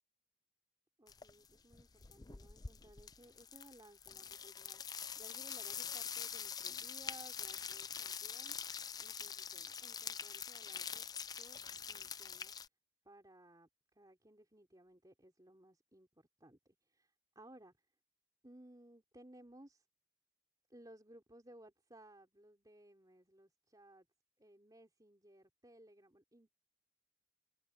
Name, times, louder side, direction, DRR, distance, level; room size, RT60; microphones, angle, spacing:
voice 1, 1.0-8.6 9.0-11.1 11.3-11.6 11.9-12.5 13.1-17.9 18.4-19.9 20.7-24.1 24.4-26.5, right 1 dB, 20° right, 3.4 m, -60 dB
sound 1, 1.1-1.5 1.7-12.7, left 7 dB, 20° left, 0.4 m, -45 dB
head